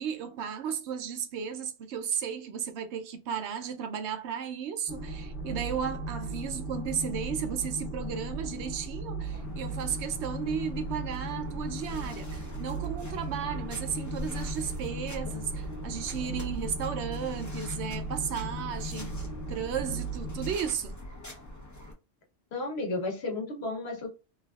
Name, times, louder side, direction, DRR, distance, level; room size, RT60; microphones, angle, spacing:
voice 1, 0.0-21.0, right 8 dB, 85° right, 0.9 m, -34 dB
sound 1, 4.9-20.6, right 1 dB, 50° left, 1.0 m, -37 dB
sound 2, 9.3-21.9, left 1 dB, 20° left, 0.6 m, -44 dB
voice 2, 22.5-24.1, left 2 dB, 70° left, 1.2 m, -33 dB
3.3 x 2.4 x 2.3 m
omnidirectional pair, 1.1 m